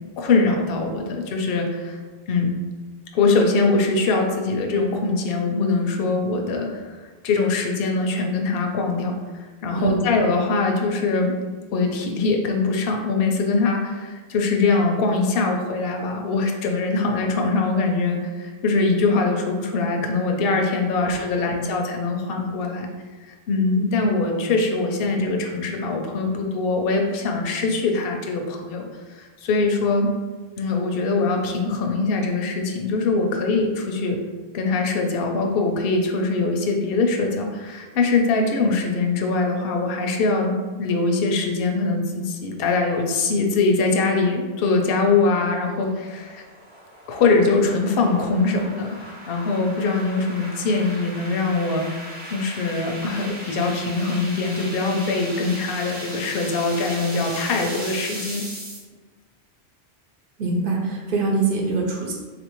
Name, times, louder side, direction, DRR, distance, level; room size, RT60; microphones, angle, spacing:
voice 1, 0.2-2.0 2.3-2.6 3.1-7.0 7.2-11.4 11.7-22.9 23.5-30.1 30.6-34.2 34.5-46.4 47.1-49.0 49.3-58.4, left 3 dB, 65° left, 2 dB, 0.7 m, -22 dB
voice 2, 9.7-10.0 21.0-21.6 60.4-62.1, right 4 dB, 60° right, -1 dB, 0.9 m, -24 dB
sound 1, 44.8-58.8, equal, 15° right, 0.5 m, -37 dB
3.7 x 2.5 x 3.0 m, 1.3 s
omnidirectional pair, 1.1 m